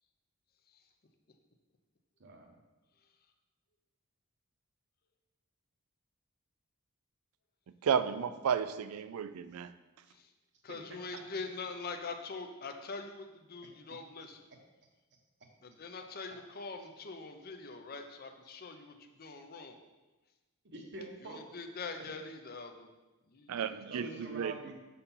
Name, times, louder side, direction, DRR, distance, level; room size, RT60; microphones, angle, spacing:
voice 1, 2.2-2.6 10.7-10.8 20.6-21.4 22.0-22.1 23.8-24.7, right 2 dB, 50° right, 2 dB, 1.1 m, -45 dB
voice 2, 7.8-9.7 23.5-24.7, right 7 dB, 80° right, 13 dB, 0.4 m, -33 dB
voice 3, 10.6-14.4 15.6-19.8 21.2-22.9 23.3-23.6, left 4 dB, 45° left, 6 dB, 0.6 m, -43 dB
6.8 x 4.2 x 5.5 m, 1.1 s
head